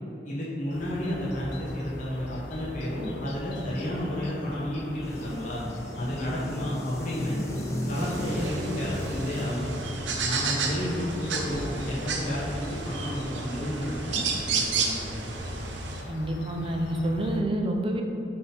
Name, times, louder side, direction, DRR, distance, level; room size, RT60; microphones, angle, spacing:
voice 1, 0.2-5.6 6.0-7.4 7.9-9.7 10.2-15.2, left 1 dB, 45° left, -7 dB, 1.1 m, -32 dB
sound 1, 0.7-17.4, left 1 dB, 75° left, 0.6 m, -41 dB
sound 2, 5.0-13.1, equal, 15° left, 0.8 m, -37 dB
sound 3, 7.9-16.0, right 4 dB, 90° right, 0.7 m, -32 dB
voice 2, 16.1-18.0, right 1 dB, 30° right, 2 dB, 0.6 m, -28 dB
8.1 x 3.8 x 4.3 m, 2.8 s
head